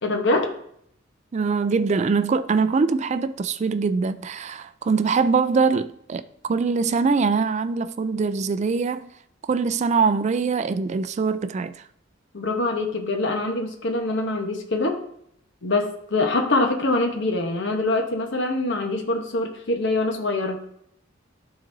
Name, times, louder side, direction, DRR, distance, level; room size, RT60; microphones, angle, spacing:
voice 1, 0.0-0.5 12.3-15.0 15.6-20.6, left 2 dB, 60° left, 1.0 m, -24 dB
voice 2, 1.3-9.1 9.5-11.7, right 4 dB, 35° right, 0.3 m, -23 dB
12.0 x 4.0 x 2.7 m
head